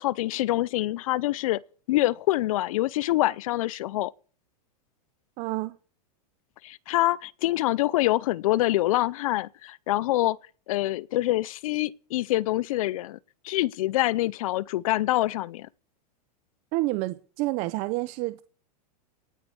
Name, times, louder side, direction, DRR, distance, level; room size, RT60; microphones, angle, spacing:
voice 1, 0.0-1.6 1.9-4.1 6.6-10.4 10.7-13.2 13.4-15.7, left 16 dB, 55° left, 0.7 m, -25 dB
voice 2, 5.4-5.8 16.7-18.4, right 19 dB, 35° right, 0.7 m, -29 dB
18.5 x 9.0 x 7.0 m
supercardioid pair, 155°, 21 cm